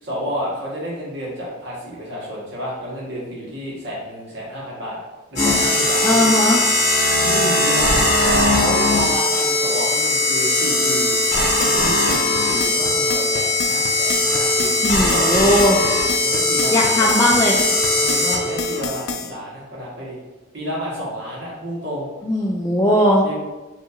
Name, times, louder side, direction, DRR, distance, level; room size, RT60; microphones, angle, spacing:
voice 1, 0.0-5.0 5.3-6.3 7.2-11.1 11.6-15.5 16.2-17.4 17.9-20.2 20.5-22.1 23.2-23.4, equal, 55° right, -5 dB, 1.3 m, -30 dB
sound 1, 5.4-18.8, left 2 dB, 35° left, 1.2 m, -19 dB
voice 2, 6.0-6.6 14.8-15.8 16.7-17.6 22.2-23.2, equal, 15° left, -5 dB, 0.3 m, -18 dB
sound 2, 11.4-19.3, left 5 dB, 85° left, 0.5 m, -30 dB
5.5 x 2.8 x 2.5 m, 1.1 s
head